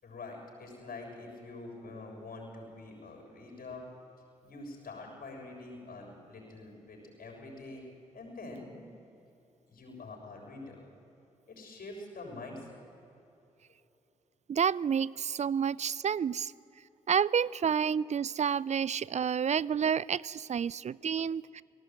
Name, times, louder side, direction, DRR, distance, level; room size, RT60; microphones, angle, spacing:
voice 1, 0.0-3.9 4.4-7.9 8.1-8.7 9.7-10.9 11.5-12.8, left 2 dB, 60° left, 1 dB, 6.7 m, -45 dB
voice 2, 14.5-16.5 17.1-21.6, right 7 dB, 45° right, 23 dB, 0.5 m, -29 dB
18.0 x 17.0 x 9.2 m, 2.8 s
hypercardioid pair, 40°, 16 cm